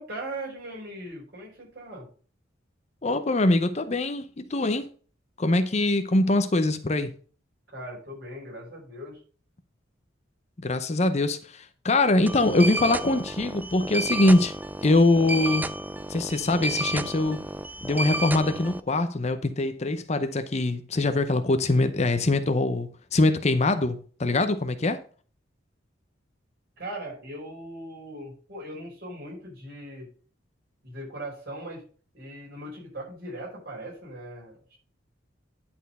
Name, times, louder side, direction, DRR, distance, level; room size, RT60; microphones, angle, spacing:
voice 1, 0.0-2.1 7.7-9.2 26.8-30.1 30.8-31.8 32.1-34.8, right 1 dB, 55° right, 5.1 m, -39 dB
voice 2, 3.0-4.9 5.4-7.1 10.6-14.5 14.8-15.6 16.1-17.4 17.8-25.0, left 2 dB, 35° left, 0.6 m, -23 dB
sound 1, 12.3-18.8, right 1 dB, 10° right, 0.3 m, -32 dB
10.5 x 4.4 x 5.5 m
head